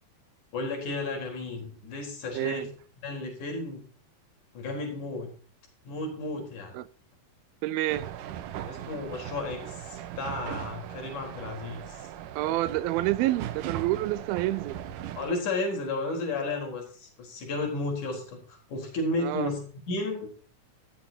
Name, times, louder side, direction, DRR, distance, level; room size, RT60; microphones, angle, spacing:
voice 1, 0.5-2.7 3.0-3.9 4.5-5.3 5.9-6.7 8.7-12.1 15.2-20.3, left 2 dB, 55° left, 5.4 m, -33 dB
voice 2, 2.3-2.7 6.7-6.9 7.6-8.1 12.4-14.8 19.2-19.5, right 16 dB, 90° right, 2.5 m, -28 dB
sound 1, 7.9-15.3, right 11 dB, 70° right, 2.4 m, -39 dB
16.0 x 13.5 x 2.8 m
omnidirectional pair, 4.2 m